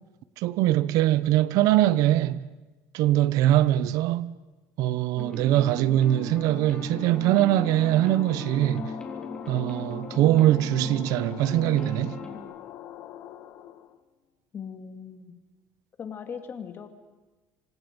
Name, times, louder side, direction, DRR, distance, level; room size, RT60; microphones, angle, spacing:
voice 1, 0.4-2.4 2.9-4.3 4.8-8.9 9.5-12.2, right 14 dB, 75° right, 0.8 m, -22 dB
sound 1, 5.2-12.4, left 2 dB, 15° left, 3.4 m, -38 dB
sound 2, 5.6-14.0, left 11 dB, 75° left, 1.6 m, -44 dB
Musical instrument, 6.5-12.9, left 6 dB, 55° left, 6.7 m, -52 dB
voice 2, 14.5-15.4 16.0-16.9, left 7 dB, 35° left, 2.3 m, -39 dB
26.0 x 26.0 x 5.3 m
cardioid pair, 135°, 6 cm